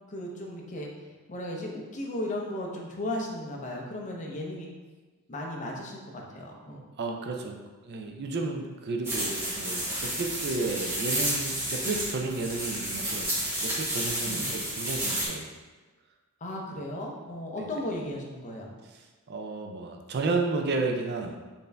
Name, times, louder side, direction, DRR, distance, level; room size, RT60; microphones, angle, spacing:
voice 1, 0.1-0.9 1.3-4.7 5.3-6.8 14.2-14.5 16.4-18.8, left 1 dB, 35° left, -1 dB, 0.6 m, -35 dB
voice 2, 7.0-7.6 7.8-13.3 13.6-15.5 17.6-17.7 19.3-21.4, right 3 dB, 50° right, 3 dB, 0.4 m, -32 dB
sound 1, 9.0-15.3, right 1 dB, 10° right, 0.8 m, -31 dB
4.2 x 2.6 x 3.3 m, 1.3 s
head